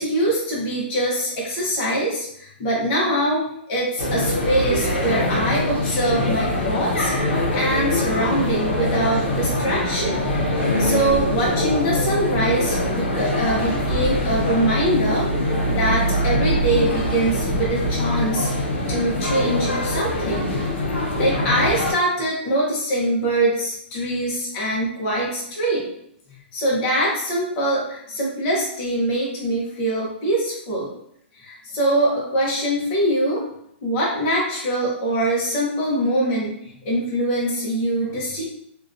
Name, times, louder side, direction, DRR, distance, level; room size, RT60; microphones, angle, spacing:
voice 1, 0.0-7.1 7.5-10.2 10.8-18.5 18.9-20.5 21.2-25.8 26.5-30.9 31.4-33.4 33.8-36.6 36.8-38.4, right 1 dB, 20° left, -5 dB, 0.6 m, -23 dB
sound 1, 4.0-21.9, left 1 dB, 65° left, 0.7 m, -23 dB
2.5 x 2.2 x 2.4 m, 0.71 s
hypercardioid pair, 180°, 6 cm